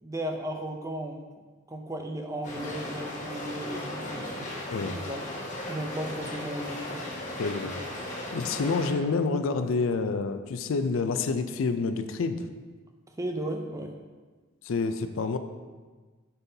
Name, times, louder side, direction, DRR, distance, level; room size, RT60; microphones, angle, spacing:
voice 1, 0.0-1.2 1.7-4.5 4.8-5.4 5.7-7.1 13.2-14.0, right 1 dB, 15° right, 3 dB, 0.4 m, -35 dB
sound 1, 2.4-8.9, left 1 dB, 35° left, 1.4 m, -37 dB
voice 2, 7.4-7.7 8.3-12.4 14.6-15.4, left 4 dB, 75° left, 9 dB, 0.4 m, -28 dB
7.8 x 5.5 x 2.7 m, 1.4 s
head